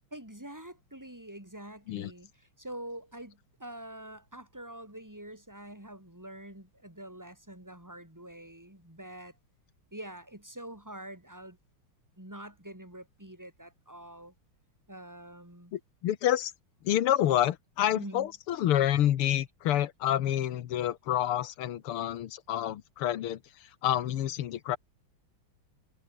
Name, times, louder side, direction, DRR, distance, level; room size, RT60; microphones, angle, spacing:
voice 1, 0.1-9.4 9.9-11.6 12.2-14.3 14.9-15.7 17.9-18.3, right 1 dB, 10° right, 5.1 m, -45 dB
voice 2, 15.7-16.5 16.8-24.8, left 12 dB, 85° left, 2.0 m, -28 dB
omnidirectional pair, 2.4 m